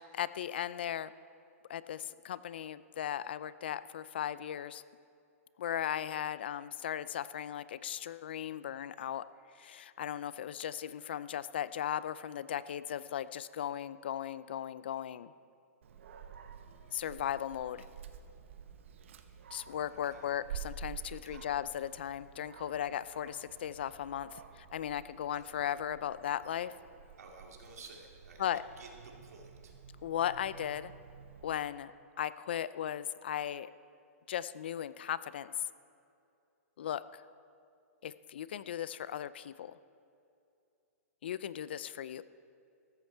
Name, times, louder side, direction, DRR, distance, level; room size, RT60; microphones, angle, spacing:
voice 1, 0.2-1.1 1.7-4.8 5.6-9.2 9.5-15.3 16.9-17.9 19.5-26.7 28.4-28.6 30.0-30.9 31.4-31.9 32.2-33.7 34.3-35.5 36.8-37.2 38.0-39.7 41.2-42.2, left 10 dB, 40° left, 17 dB, 0.3 m, -37 dB
Dog, 15.8-31.5, right 7 dB, 50° right, 0.9 m, -50 dB
voice 2, 19.9-20.3 21.1-21.5 25.2-25.5 27.2-29.7, right 4 dB, 90° right, 1 dB, 2.5 m, -54 dB
14.0 x 14.0 x 4.5 m, 2.6 s
hypercardioid pair, 180°, 8 cm